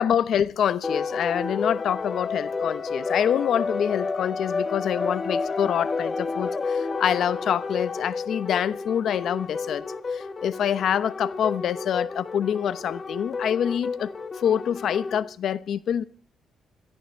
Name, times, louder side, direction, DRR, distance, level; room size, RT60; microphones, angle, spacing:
voice 1, 0.0-9.8 10.1-16.0, left 9 dB, 65° left, 0.9 m, -26 dB
sound 1, 0.8-15.2, left 4 dB, 30° left, 1.6 m, -31 dB
22.0 x 14.0 x 4.6 m
cardioid pair, 90°, 0 cm